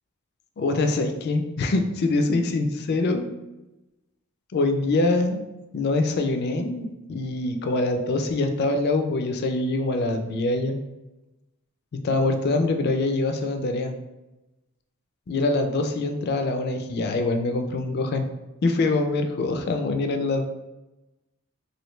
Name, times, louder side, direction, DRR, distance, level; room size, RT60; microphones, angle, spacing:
voice 1, 0.6-3.3 4.5-5.4 5.7-10.8 12.0-14.0 15.3-18.3 18.6-20.5, left 2 dB, 50° left, 6 dB, 0.3 m, -24 dB
3.1 x 2.6 x 3.0 m, 1.0 s
head